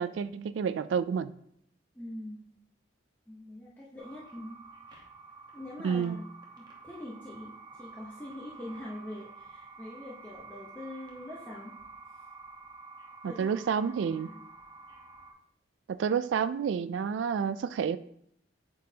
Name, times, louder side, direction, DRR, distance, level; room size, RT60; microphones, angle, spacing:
voice 1, 0.0-1.3 5.8-6.2 13.2-14.3 15.9-18.0, right 7 dB, 80° right, 13 dB, 0.3 m, -29 dB
voice 2, 1.9-2.5 3.3-4.6 5.5-6.3 6.6-11.8 13.2-13.5 14.2-14.3, left 1 dB, 10° left, -7 dB, 0.8 m, -43 dB
sound 1, 4.0-15.3, right 3 dB, 25° right, 1.0 m, -50 dB
8.4 x 4.0 x 2.8 m, 0.71 s
head